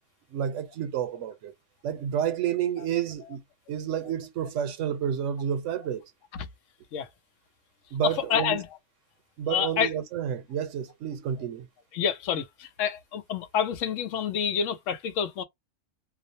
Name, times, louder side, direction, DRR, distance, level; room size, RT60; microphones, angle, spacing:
voice 1, 0.3-1.5 1.8-3.4 3.7-6.0 7.9-8.6 9.4-11.7, right 9 dB, 80° right, 0.9 m, -30 dB
voice 2, 8.0-8.7 9.5-9.9 11.9-15.4, left 8 dB, 85° left, 0.9 m, -28 dB
2.4 x 2.0 x 2.7 m
omnidirectional pair, 1.3 m